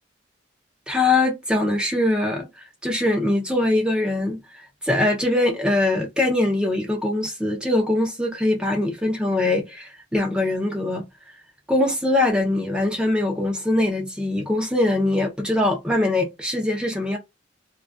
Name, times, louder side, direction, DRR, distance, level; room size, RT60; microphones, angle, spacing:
voice 1, 0.9-11.3 11.7-17.2, left 2 dB, 5° right, 0.5 m, -22 dB
2.3 x 2.2 x 2.5 m
head